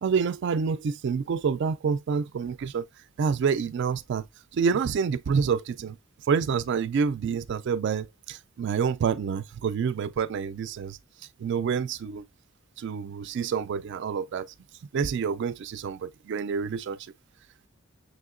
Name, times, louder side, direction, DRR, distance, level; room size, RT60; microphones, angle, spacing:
voice 1, 0.0-2.8 3.2-4.2 4.5-6.0 6.3-11.0 11.4-12.2 12.8-14.5 14.9-17.0, right 6 dB, 60° right, 0.3 m, -27 dB
6.4 x 2.8 x 2.5 m
head